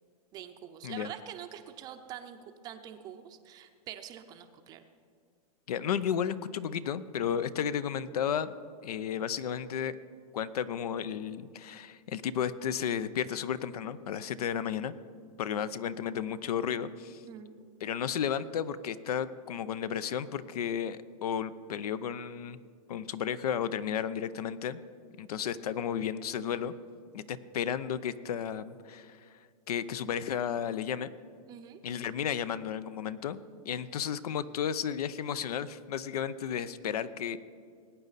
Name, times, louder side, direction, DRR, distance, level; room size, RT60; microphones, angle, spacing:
voice 1, 0.3-4.9 17.3-17.5 31.5-31.8, right 10 dB, 20° right, 8 dB, 0.6 m, -45 dB
voice 2, 5.7-8.5 8.8-9.9 10.3-15.0 15.4-17.2 17.8-22.6 22.9-24.8 25.2-26.7 27.1-29.2 29.7-31.1 31.8-33.4 33.7-37.4, left 8 dB, 70° left, 16 dB, 0.7 m, -33 dB
20.0 x 9.2 x 4.1 m, 2.2 s
hypercardioid pair, 155°, 20 cm